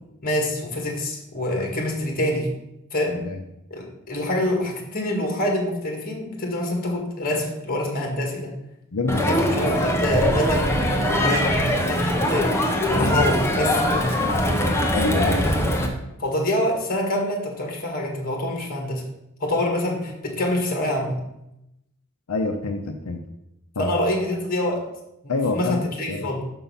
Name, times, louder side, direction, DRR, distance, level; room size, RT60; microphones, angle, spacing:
voice 1, 0.2-2.5 2.9-3.3 3.7-8.5 9.3-12.6 12.9-14.2 16.2-19.1 19.4-21.2 23.8-24.9 25.2-26.4, left 1 dB, 40° left, 2 dB, 1.8 m, -26 dB
voice 2, 8.9-9.5 14.9-15.5 22.3-23.2 23.8-23.9 25.3-25.8 26.1-26.3, left 3 dB, 85° left, 4 dB, 0.7 m, -26 dB
Crowd, 9.1-15.9, equal, 10° left, 0.9 m, -22 dB
6.1 x 5.6 x 5.5 m, 0.86 s
head